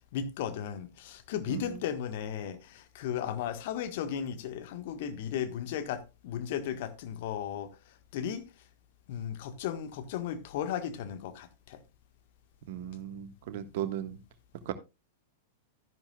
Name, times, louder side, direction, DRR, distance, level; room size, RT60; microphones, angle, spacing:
voice 1, 0.1-8.5 9.1-11.8, left 9 dB, 50° left, 1.4 m, -35 dB
voice 2, 1.5-1.8 12.7-14.2 14.6-14.7, right 11 dB, 50° right, 1.4 m, -36 dB
13.0 x 10.5 x 2.3 m
figure-of-eight pair, 95°, 0 cm